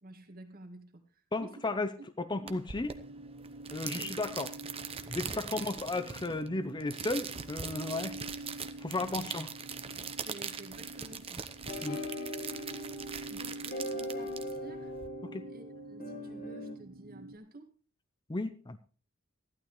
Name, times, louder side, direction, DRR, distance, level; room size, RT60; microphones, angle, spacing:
voice 1, 0.0-1.7 2.0-2.5 3.9-4.1 5.3-5.6 9.0-9.3 10.2-11.5 13.3-14.9 15.4-17.7, right 1 dB, 45° right, 5 dB, 2.0 m, -51 dB
voice 2, 1.3-2.9 3.7-4.5 5.1-8.2 8.8-9.5 11.8-12.0 15.3-15.4 18.3-18.8, left 2 dB, 20° left, 9 dB, 0.6 m, -34 dB
sound 1, 2.5-15.1, right 6 dB, 25° right, 0.9 m, -42 dB
sound 2, 2.7-17.4, right 1 dB, 90° right, 1.1 m, -47 dB
sound 3, 11.7-16.8, left 1 dB, 40° left, 1.6 m, -40 dB
16.0 x 12.0 x 3.2 m, 0.37 s
head